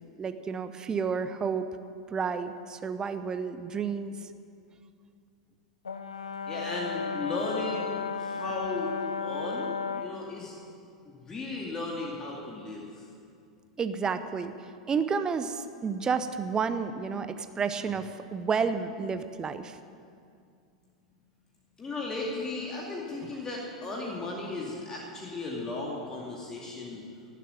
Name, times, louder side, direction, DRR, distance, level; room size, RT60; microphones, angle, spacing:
voice 1, 0.2-1.7 2.1-4.1 13.8-19.8, right 5 dB, 20° right, 10 dB, 0.7 m, -31 dB
Brass instrument, 5.8-10.2, left 5 dB, 75° left, 0.7 m, -34 dB
voice 2, 6.5-10.5 11.1-13.1 21.8-27.0, left 2 dB, 20° left, -3 dB, 2.3 m, -36 dB
17.5 x 7.6 x 8.9 m, 2.4 s
figure-of-eight pair, 90°, 3 cm